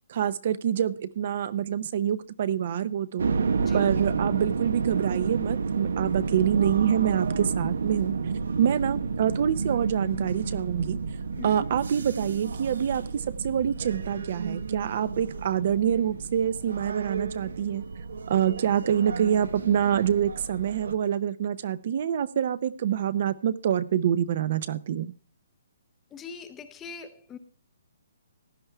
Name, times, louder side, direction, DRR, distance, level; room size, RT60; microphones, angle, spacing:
voice 1, 0.1-3.3 3.7-8.1 8.6-11.0 11.4-17.8 18.3-25.1, right 9 dB, 40° right, 16 dB, 0.6 m, -26 dB
sound 1, 3.2-20.9, right 5 dB, 80° right, 1.1 m, -31 dB
voice 2, 3.6-3.9 11.4-11.6 26.1-27.4, left 6 dB, 10° left, 10 dB, 0.6 m, -41 dB
16.0 x 10.5 x 3.4 m, 0.36 s
hypercardioid pair, 175°, 0 cm